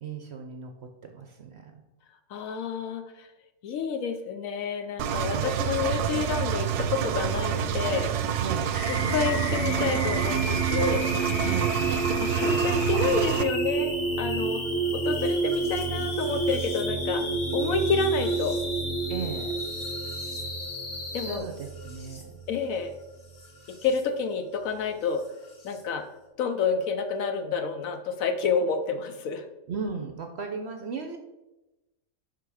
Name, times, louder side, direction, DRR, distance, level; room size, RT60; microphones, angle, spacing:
voice 1, 0.0-0.7 1.0-1.8 5.3-5.5 8.4-8.8 11.4-11.8 19.1-19.5 21.2-22.3 29.7-31.2, right 5 dB, 60° right, 5 dB, 0.7 m, -35 dB
voice 2, 2.3-3.3 3.6-8.1 8.9-11.1 12.2-14.6 14.9-17.2 17.5-18.6 21.1-21.5 22.5-22.9 23.7-25.2 25.6-26.1 26.4-29.5, left 5 dB, 70° left, 8 dB, 1.0 m, -29 dB
Engine, 5.0-13.4, right 9 dB, 85° right, 1.1 m, -28 dB
sound 1, 8.7-21.4, left 2 dB, 25° left, 0.9 m, -35 dB
sound 2, 8.9-24.0 25.2-25.8, right 4 dB, 45° left, 1.4 m, -31 dB
5.9 x 5.2 x 4.9 m, 1.0 s
omnidirectional pair, 1.6 m